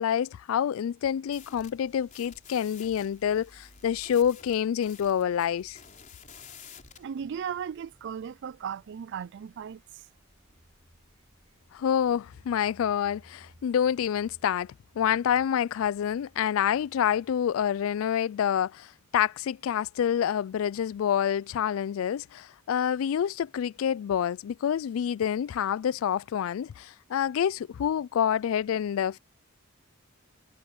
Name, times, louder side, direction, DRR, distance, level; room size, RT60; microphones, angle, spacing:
voice 1, 0.0-5.8 11.7-29.2, left 9 dB, 70° left, 0.3 m, -27 dB
sound 1, 1.3-7.0, left 6 dB, 40° left, 4.7 m, -51 dB
sound 2, 1.3-18.3, equal, 5° left, 7.6 m, -69 dB
sound 3, 6.3-15.5, equal, 30° right, 2.3 m, -61 dB
voice 2, 7.0-10.0, right 7 dB, 60° right, 0.3 m, -36 dB
head